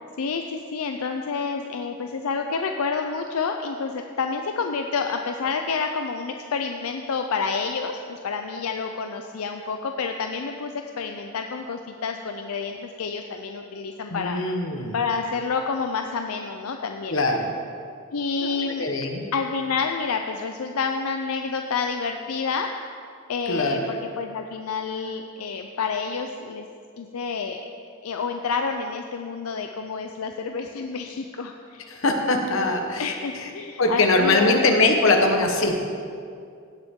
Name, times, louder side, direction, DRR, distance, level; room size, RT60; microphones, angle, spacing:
voice 1, 0.2-14.4 14.9-17.2 18.1-18.9 19.3-22.7 23.3-26.7 27.0-27.7 28.0-31.9 33.0-34.6, left 5 dB, 85° left, 5 dB, 0.5 m, -29 dB
voice 2, 14.1-14.9 17.1-17.5 18.4-19.2 23.5-23.8 31.9-33.5 33.8-35.8, left 2 dB, 65° left, 3 dB, 1.1 m, -22 dB
16.5 x 7.1 x 3.7 m, 2.3 s
head